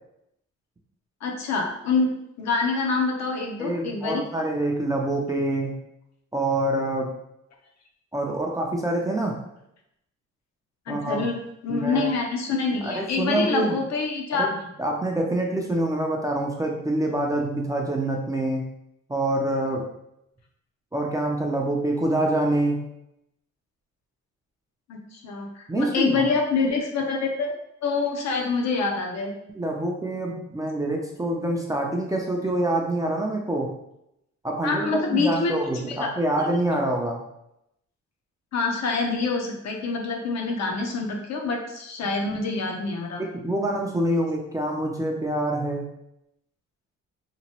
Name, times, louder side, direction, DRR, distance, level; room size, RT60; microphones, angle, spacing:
voice 1, 1.2-4.2 10.9-14.5 24.9-27.5 27.8-29.3 34.6-35.6 35.9-36.1 38.5-43.2, left 4 dB, 60° left, 1 dB, 0.7 m, -26 dB
voice 2, 3.6-5.8 6.3-7.2 8.1-9.4 10.9-11.2 11.7-12.1 12.8-13.8 14.3-18.7 19.1-19.9 20.9-22.8 25.7-26.3 29.5-33.7 34.4-37.2 43.2-45.9, right 1 dB, 10° right, 0 dB, 0.4 m, -26 dB
2.9 x 2.2 x 2.8 m, 0.81 s
cardioid pair, 90°, 30 cm